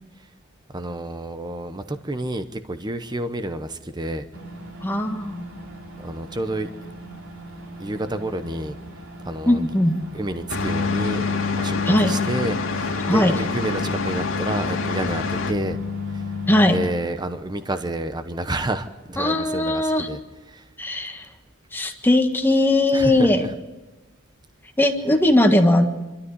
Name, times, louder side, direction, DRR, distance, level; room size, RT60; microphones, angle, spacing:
voice 1, 0.7-4.3 6.0-6.7 7.8-8.7 9.2-9.6 10.1-11.2 11.5-15.8 16.1-16.3 16.7-20.2 20.5-20.6 22.9-23.5, right 1 dB, 20° right, 9 dB, 0.9 m, -29 dB
sound 1, 4.3-16.8, left 4 dB, 85° right, 3.7 m, -31 dB
voice 2, 4.8-5.4 9.4-10.0 11.8-12.2 13.1-13.3 16.5-16.8 19.2-20.1 20.8-21.2 21.7-23.5 24.8-25.9, left 1 dB, 10° left, 4 dB, 1.6 m, -19 dB
sound 2, 10.5-15.5, left 3 dB, 75° left, 2.1 m, -28 dB
26.0 x 13.0 x 9.6 m, 1.1 s
head